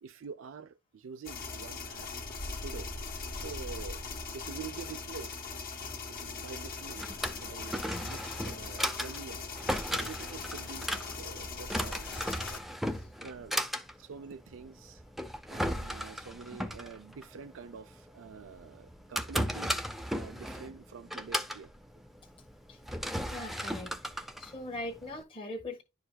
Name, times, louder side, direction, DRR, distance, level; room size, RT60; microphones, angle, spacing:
voice 1, 0.0-2.1 2.6-2.9 3.3-4.0 4.3-5.6 6.1-7.1 7.3-9.4 9.9-12.1 13.2-13.6 14.0-15.0 15.5-19.8 20.1-21.7, right 5 dB, 75° right, 0.4 m, -46 dB
sound 1, 1.2-12.6, left 4 dB, 45° left, 1.6 m, -40 dB
Drawer open or close, 6.7-25.2, equal, ahead, 0.6 m, -36 dB
voice 2, 23.3-25.8, left 1 dB, 25° left, 1.4 m, -42 dB
11.0 x 4.7 x 2.3 m
head